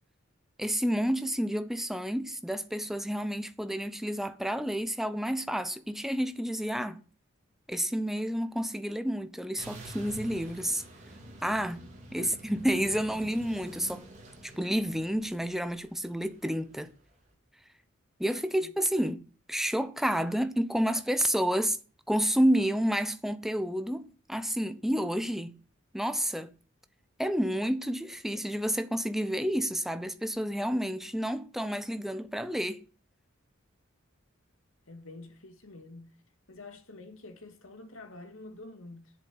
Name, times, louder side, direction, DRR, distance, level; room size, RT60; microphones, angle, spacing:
voice 1, 0.6-7.0 7.7-10.8 11.4-11.8 12.1-14.1 14.4-16.9 18.2-21.8 22.1-25.6 25.9-26.5 27.2-32.8, equal, ahead, 0.8 m, -30 dB
sound 1, 9.6-16.9, right 2 dB, 35° right, 3.9 m, -48 dB
voice 2, 34.9-36.2 36.5-39.1, left 2 dB, 85° left, 2.3 m, -47 dB
10.0 x 7.8 x 8.5 m
head